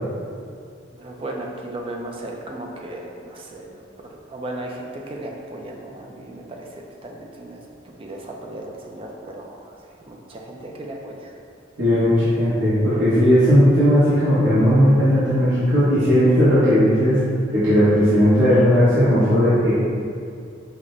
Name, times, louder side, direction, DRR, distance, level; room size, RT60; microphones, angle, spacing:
voice 1, 0.9-7.6 8.0-11.3, right 1 dB, 30° right, 0 dB, 0.3 m, -36 dB
voice 2, 11.8-17.2 17.5-19.7, equal, 70° right, -16 dB, 1.1 m, -16 dB
5.9 x 2.1 x 2.5 m, 2.3 s
head